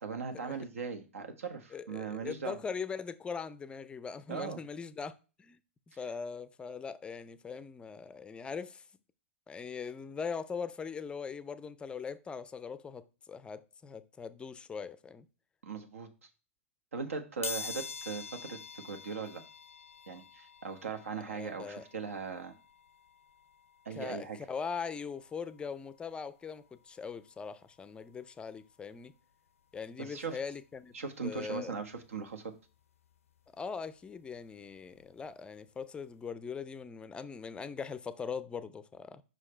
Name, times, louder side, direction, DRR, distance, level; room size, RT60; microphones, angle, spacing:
voice 1, 0.0-2.6 4.3-4.6 15.6-16.3 16.9-19.4 20.1-22.5 23.8-24.4 30.0-30.4 30.9-32.5, right 5 dB, 80° right, 1.2 m, -39 dB
voice 2, 1.7-5.6 6.0-8.8 9.5-15.3 21.3-21.8 23.9-29.1 29.7-30.9 31.2-31.7 33.6-39.2, left 5 dB, 15° left, 0.4 m, -41 dB
sound 1, 17.4-28.1 28.6-28.7 29.8-29.9 30.2-32.3 32.6-35.3 35.6-35.8 36.1-36.2, left 5 dB, 80° left, 0.5 m, -47 dB
5.6 x 4.9 x 4.3 m
hypercardioid pair, 115°, 7 cm